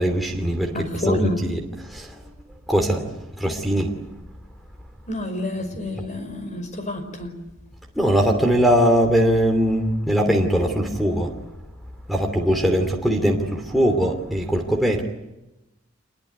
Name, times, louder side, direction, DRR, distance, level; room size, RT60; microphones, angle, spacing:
voice 1, 0.0-0.8 1.1-2.2 2.7-3.1 3.4-3.9 7.9-11.3 12.1-15.0, equal, ahead, 1 dB, 2.9 m, -21 dB
voice 2, 0.7-1.4 5.1-7.4, left 1 dB, 35° left, 7 dB, 5.3 m, -28 dB
27.0 x 21.5 x 9.4 m, 0.95 s
head